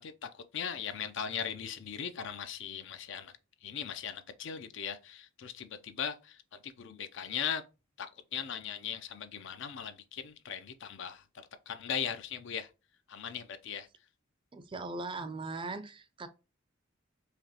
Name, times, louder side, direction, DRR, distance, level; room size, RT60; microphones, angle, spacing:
voice 1, 0.0-3.3 3.6-7.6 8.0-11.2 11.7-12.7 13.1-13.9, left 8 dB, 65° left, 0.5 m, -39 dB
voice 2, 14.5-16.3, right 3 dB, 25° right, 0.4 m, -39 dB
4.9 x 2.9 x 2.8 m
head